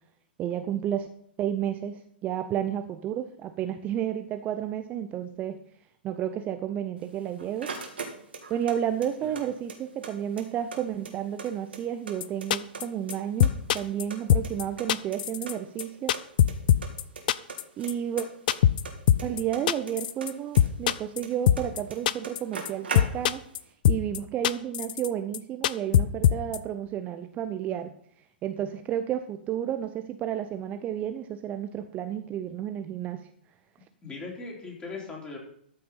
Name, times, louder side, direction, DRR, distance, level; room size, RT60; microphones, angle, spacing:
voice 1, 0.4-1.1 1.4-5.6 6.0-7.7 8.5-16.1 17.8-18.3 19.2-23.4 23.9-27.9 28.4-33.2, right 10 dB, 25° right, 8 dB, 0.7 m, -31 dB
sound 1, 7.0-8.8 9.0-10.1 10.4-10.5 10.7-12.1 12.4-13.2 13.4-14.9 15.1-15.2 15.5-15.6 15.8-16.5 16.8-17.2 17.5-19.9 20.2-21.6 21.9-22.0 22.2-23.5, right 4 dB, 75° right, 2.4 m, -38 dB
sound 2, 12.2-12.3 12.5-12.8 13.1-13.2 13.4-14.0 14.3-14.6 14.9-15.5 15.8-17.0 17.3-17.6 17.9-18.0 18.2-18.3 18.5-18.8 19.1-19.4 19.7-20.3 20.6-21.2 21.5-21.8 22.1-22.4 22.7-22.8 23.0-23.6 23.8-24.2 24.4-25.1 25.3-25.4 25.6-26.6, left 11 dB, 55° left, 0.5 m, -21 dB
voice 2, 34.0-35.4, left 3 dB, 20° left, -1 dB, 3.9 m, -39 dB
13.5 x 5.9 x 5.6 m, 0.67 s
figure-of-eight pair, 110°, 6 cm